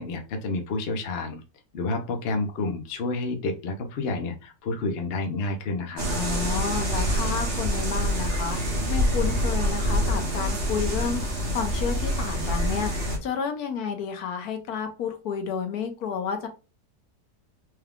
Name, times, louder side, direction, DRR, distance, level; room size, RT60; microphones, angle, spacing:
voice 1, 0.0-1.4 1.7-6.0, left 2 dB, 50° left, 4 dB, 0.7 m, -29 dB
sound 1, 6.0-13.2, equal, 45° right, 1.3 m, -26 dB
voice 2, 6.1-8.6 8.9-11.2 11.5-16.5, left 7 dB, 70° left, 5 dB, 1.2 m, -31 dB
4.5 x 2.3 x 3.5 m, 0.31 s
omnidirectional pair, 1.8 m